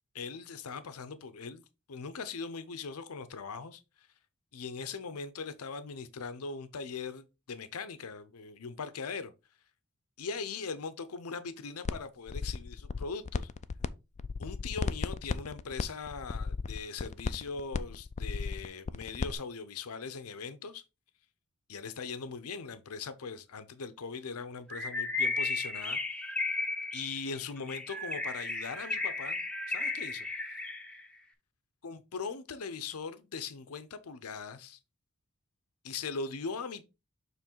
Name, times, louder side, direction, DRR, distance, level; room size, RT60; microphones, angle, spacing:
voice 1, 0.1-4.1 4.5-9.3 10.2-13.5 14.4-20.8 21.7-26.0 26.9-29.4 29.7-30.3 31.8-34.8 35.8-36.8, left 5 dB, 85° left, 0.7 m, -40 dB
sound 1, 11.8-12.0 12.3-13.9 14.1-19.3, left 4 dB, 30° left, 0.3 m, -34 dB
Bird, 24.7-31.0, left 3 dB, 5° left, 0.8 m, -34 dB
6.9 x 3.3 x 4.4 m
head